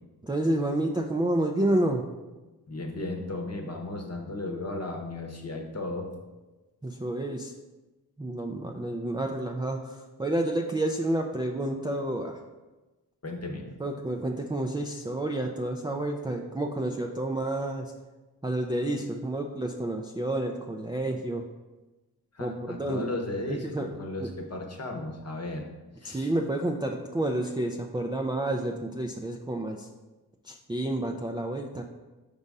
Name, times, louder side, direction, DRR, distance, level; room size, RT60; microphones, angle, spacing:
voice 1, 0.2-2.1 6.8-7.5 8.2-12.4 13.8-17.9 18.4-21.4 22.4-23.1 23.5-23.9 24.2-24.3 26.0-29.9 30.4-31.8, right 1 dB, 10° right, 2 dB, 0.4 m, -29 dB
voice 2, 2.7-6.1 13.2-13.7 22.3-25.7 26.0-26.3, left 2 dB, 40° left, 2 dB, 0.9 m, -35 dB
5.3 x 3.5 x 5.3 m, 1.1 s
wide cardioid pair, 85°, 39 cm